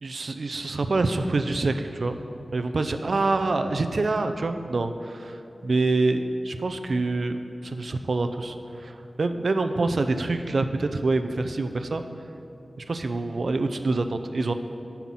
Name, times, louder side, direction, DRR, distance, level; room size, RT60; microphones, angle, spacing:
voice 1, 0.0-2.2 2.5-5.3 5.6-12.0 12.8-14.5, right 3 dB, 65° right, 8 dB, 0.6 m, -26 dB
11.0 x 5.8 x 7.6 m, 2.7 s
wide cardioid pair, 80°, 0 cm